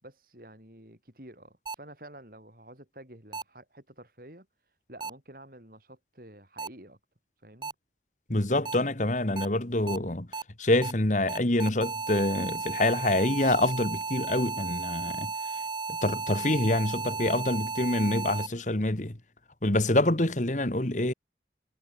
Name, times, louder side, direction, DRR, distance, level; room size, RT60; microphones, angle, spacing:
voice 1, 0.0-7.0 7.4-7.7 8.6-8.7 9.9-10.1, right 1 dB, 50° right, 6.5 m, -50 dB
sound 1, 1.7-1.8 3.3-3.4 5.0-5.1 6.6-6.7 7.6-7.7 8.7-8.8 9.4-9.5 9.9-10.0 10.3-10.4 10.8-10.9 11.3-18.5, right 4 dB, 25° right, 0.9 m, -34 dB
voice 2, 8.3-10.3 10.6-15.3 16.0-19.2 19.6-21.1, left 1 dB, 45° left, 1.8 m, -26 dB
head